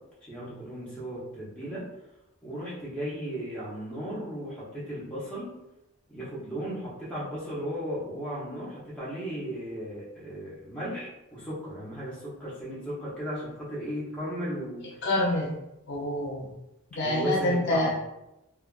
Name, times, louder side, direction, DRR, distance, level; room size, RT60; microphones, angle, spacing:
voice 1, 0.2-1.8 2.4-5.5 6.1-15.0 17.0-17.9, equal, 5° left, -8 dB, 0.9 m, -35 dB
voice 2, 15.0-15.5 15.9-16.5 17.0-17.9, left 1 dB, 50° left, -3 dB, 0.4 m, -26 dB
2.7 x 2.4 x 2.4 m, 0.90 s
head